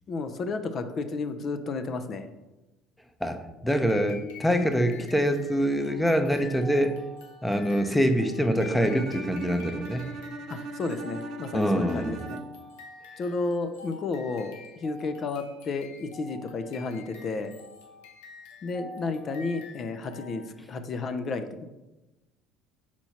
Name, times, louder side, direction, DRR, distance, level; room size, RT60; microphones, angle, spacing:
voice 1, 0.1-2.3 10.5-12.4 13.2-17.5 18.6-21.7, left 3 dB, 45° left, 9 dB, 0.6 m, -32 dB
voice 2, 3.2-7.0 7.4-10.1 11.5-12.2, equal, 5° left, 7 dB, 0.8 m, -25 dB
sound 1, 3.7-20.7, left 3 dB, 85° left, 0.9 m, -47 dB
Bowed string instrument, 8.8-12.8, right 3 dB, 55° right, 0.4 m, -39 dB
4.4 x 4.4 x 5.7 m, 1.0 s
supercardioid pair, 85°, 0 cm